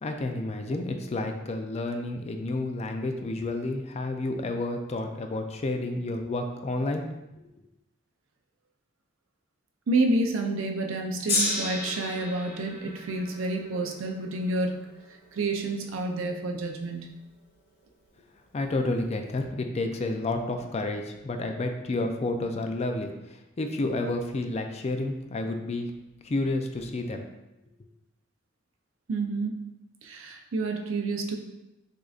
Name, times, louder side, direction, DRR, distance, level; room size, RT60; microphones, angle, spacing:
voice 1, 0.0-7.0 18.5-25.9 26.2-27.2, left 2 dB, 35° left, 5 dB, 0.4 m, -30 dB
voice 2, 9.9-14.9 15.3-17.1 29.1-29.6 30.0-31.4, right 2 dB, 75° right, 4 dB, 0.5 m, -29 dB
Gong, 11.3-17.6 18.4-18.5, left 2 dB, 55° left, 1.2 m, -34 dB
6.3 x 2.6 x 2.4 m, 0.94 s
head